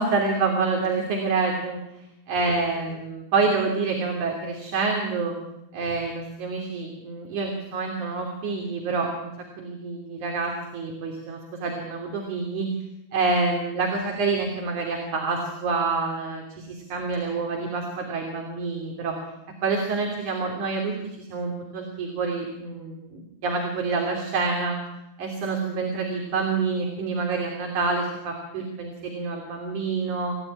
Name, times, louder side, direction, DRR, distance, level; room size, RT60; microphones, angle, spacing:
voice 1, 0.0-1.8 2.3-5.3 5.7-9.3 9.6-12.7 13.1-19.1 19.6-24.8 25.2-30.4, right 4 dB, 50° right, 1 dB, 4.4 m, -27 dB
29.0 x 16.5 x 9.9 m, 0.89 s
omnidirectional pair, 4.6 m